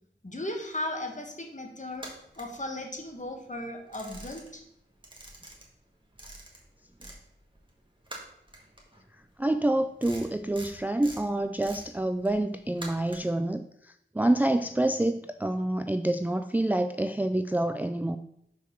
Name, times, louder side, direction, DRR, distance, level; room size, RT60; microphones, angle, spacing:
voice 1, 0.2-2.1 2.4-4.6, left 1 dB, 40° left, 2 dB, 1.4 m, -36 dB
sound 1, 1.9-3.2 3.6-4.7 5.0-7.2 7.5-13.4, right 1 dB, 25° right, 1.8 m, -46 dB
voice 2, 9.4-18.2, right 1 dB, 10° right, 8 dB, 0.3 m, -27 dB
5.7 x 4.5 x 5.9 m, 0.75 s
wide cardioid pair, 45°, 19 cm